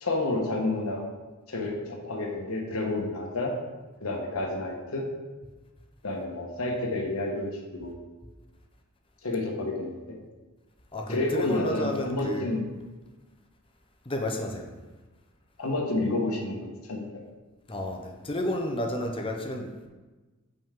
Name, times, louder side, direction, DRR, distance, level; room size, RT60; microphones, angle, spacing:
voice 1, 0.0-1.0 1.5-3.5 4.0-5.1 6.0-7.5 7.8-7.9 9.2-10.2 11.1-12.6 15.6-17.2, left 2 dB, 75° left, 0 dB, 1.3 m, -30 dB
voice 2, 10.9-12.5 14.0-14.6 17.7-19.9, left 1 dB, 25° left, 3 dB, 0.6 m, -31 dB
7.0 x 5.4 x 3.7 m, 1.2 s
head